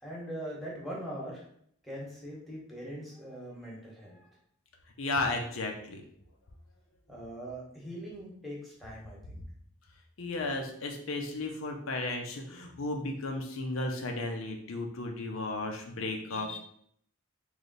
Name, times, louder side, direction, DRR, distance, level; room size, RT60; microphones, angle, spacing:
voice 1, 0.0-1.4 1.8-4.4 7.1-9.4, equal, ahead, -5 dB, 1.1 m, -41 dB
voice 2, 5.0-6.0 10.2-16.6, left 2 dB, 80° left, 3 dB, 0.7 m, -34 dB
3.2 x 2.7 x 4.0 m, 0.65 s
head